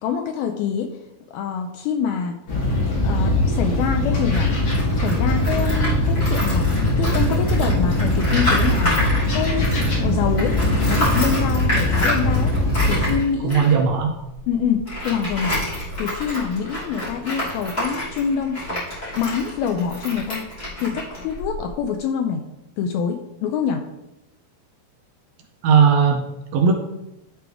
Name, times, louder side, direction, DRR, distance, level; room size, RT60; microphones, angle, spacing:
voice 1, 0.0-0.9 1.3-2.4 3.0-4.5 5.0-9.0 9.3-10.6 10.9-12.5 12.9-13.7 14.5-15.6 16.0-18.6 19.2-20.4 20.8-22.4 22.8-23.8, left 7 dB, 85° left, 5 dB, 2.2 m, -25 dB
sound 1, 2.5-13.2, left 1 dB, 45° left, 2.3 m, -21 dB
Tools, 4.3-10.0 10.3-21.8, left 1 dB, 15° left, 2.5 m, -29 dB
voice 2, 13.4-14.1 25.6-26.3 26.5-26.7, right 6 dB, 80° right, 3 dB, 2.2 m, -16 dB
12.0 x 4.6 x 3.4 m, 0.91 s
omnidirectional pair, 4.7 m